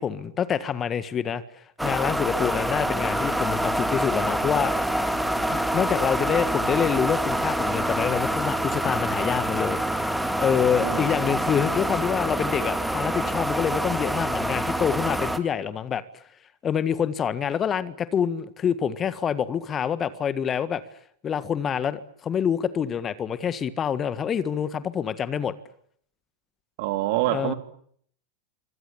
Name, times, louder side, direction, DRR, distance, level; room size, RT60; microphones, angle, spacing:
voice 1, 0.0-1.4 1.8-4.7 5.5-10.1 10.4-16.0 16.6-20.8 21.2-25.5 27.3-27.5, left 8 dB, 25° left, 14 dB, 1.7 m, -26 dB
sound 1, 1.8-15.4, right 1 dB, ahead, 2.2 m, -26 dB
voice 2, 26.8-27.5, right 15 dB, 50° right, 8 dB, 3.4 m, -25 dB
27.5 x 25.5 x 8.1 m, 0.64 s
figure-of-eight pair, 90°, 0 cm